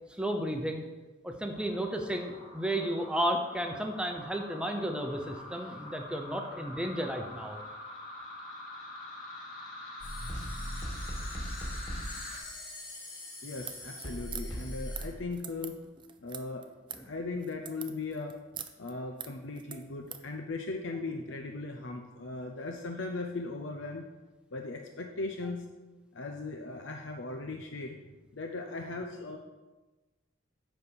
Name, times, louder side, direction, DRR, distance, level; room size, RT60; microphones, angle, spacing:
voice 1, 0.2-0.8 1.2-7.6 16.9-17.1, equal, 5° right, 4 dB, 0.8 m, -33 dB
sound 1, 1.5-12.4, left 1 dB, 40° left, 2.7 m, -45 dB
sound 2, 10.0-15.1, equal, 20° left, 2.3 m, -39 dB
voice 2, 13.4-15.8 16.2-16.6 16.9-18.4 18.8-24.1 24.5-25.6 26.1-28.0 28.3-29.4, left 3 dB, 65° left, 3 dB, 0.6 m, -38 dB
sound 3, 13.6-20.3, right 8 dB, 25° right, 0.4 m, -45 dB
10.0 x 4.2 x 6.8 m, 1.2 s
head